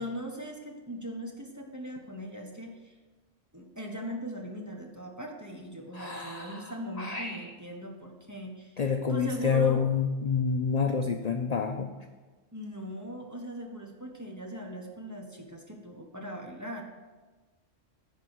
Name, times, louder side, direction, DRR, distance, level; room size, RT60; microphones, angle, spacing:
voice 1, 0.0-2.9 3.5-8.8 9.1-9.9 12.5-16.8, equal, 15° right, 1 dB, 1.2 m, -39 dB
voice 2, 5.9-6.6 7.0-7.4 8.8-11.9, left 6 dB, 45° left, 5 dB, 0.5 m, -28 dB
10.5 x 4.6 x 7.9 m, 1.3 s
omnidirectional pair, 1.3 m